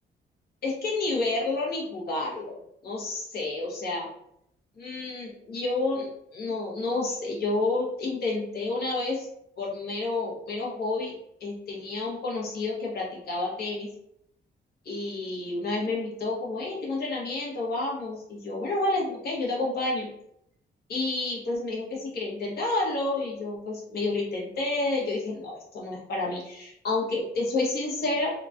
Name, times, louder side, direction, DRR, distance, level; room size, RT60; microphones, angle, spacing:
voice 1, 0.6-2.5 2.8-4.1 4.8-9.3 9.6-13.9 14.8-20.1 20.9-26.4 26.8-28.3, left 2 dB, 55° left, -4 dB, 1.0 m, -30 dB
2.9 x 2.3 x 2.5 m, 0.75 s
cardioid pair, 155°, 19 cm